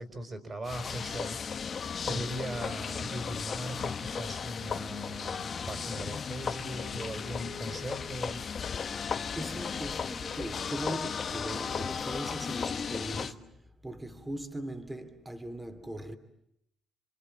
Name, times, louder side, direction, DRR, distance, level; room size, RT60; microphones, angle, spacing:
voice 1, 0.0-8.4, right 1 dB, 35° right, 4.8 m, -39 dB
sound 1, 0.6-13.3, left 6 dB, 45° left, 1.3 m, -35 dB
voice 2, 8.8-16.2, right 1 dB, 15° right, 2.6 m, -40 dB
28.5 x 25.5 x 7.6 m
cardioid pair, 90°, 0 cm